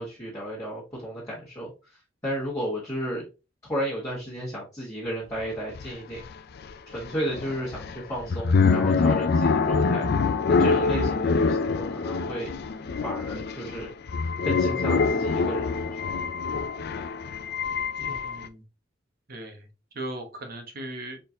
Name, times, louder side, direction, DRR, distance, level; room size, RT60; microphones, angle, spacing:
voice 1, 0.0-1.7 2.2-3.3 3.7-6.2 6.9-10.1 10.6-12.5 13.0-13.9 14.4-16.0, equal, 15° left, -7 dB, 1.4 m, -33 dB
sound 1, 5.4-5.5 5.7-18.5, left 4 dB, 55° left, 0.4 m, -25 dB
voice 2, 18.0-18.6 19.3-19.7 19.9-21.2, right 1 dB, 50° right, 4 dB, 1.1 m, -38 dB
4.4 x 3.8 x 2.8 m, 0.30 s
head